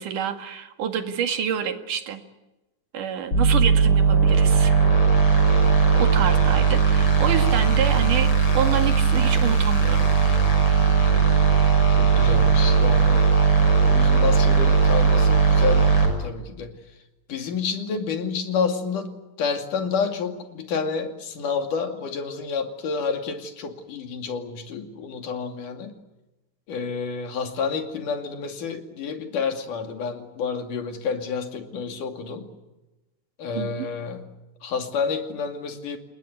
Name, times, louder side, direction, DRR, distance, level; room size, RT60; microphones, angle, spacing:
voice 1, 0.0-2.2 2.9-4.8 5.9-10.1 33.6-33.9, right 8 dB, 90° right, 6 dB, 3.6 m, -28 dB
sound 1, 3.3-16.1, right 5 dB, 45° left, 6.9 m, -18 dB
voice 2, 11.9-13.3 13.8-16.8 17.3-19.1 19.4-25.9 26.7-32.5 33.4-34.2 34.6-36.0, left 5 dB, 90° left, 5 dB, 4.1 m, -29 dB
29.0 x 19.5 x 9.8 m, 1.0 s
omnidirectional pair, 3.6 m